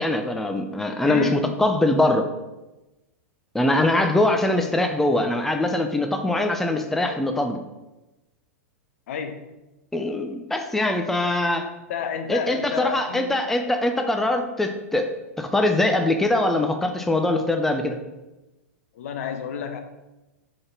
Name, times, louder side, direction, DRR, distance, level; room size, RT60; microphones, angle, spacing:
voice 1, 0.0-2.3 3.5-7.6 9.9-11.7 12.3-15.1 15.4-18.0, left 2 dB, 5° left, 5 dB, 0.4 m, -22 dB
voice 2, 1.0-1.6 3.7-3.9 9.1-9.5 11.9-13.3 18.9-19.8, left 7 dB, 65° left, 7 dB, 0.6 m, -30 dB
3.8 x 3.5 x 3.8 m, 1.0 s
hypercardioid pair, 105°, 8 cm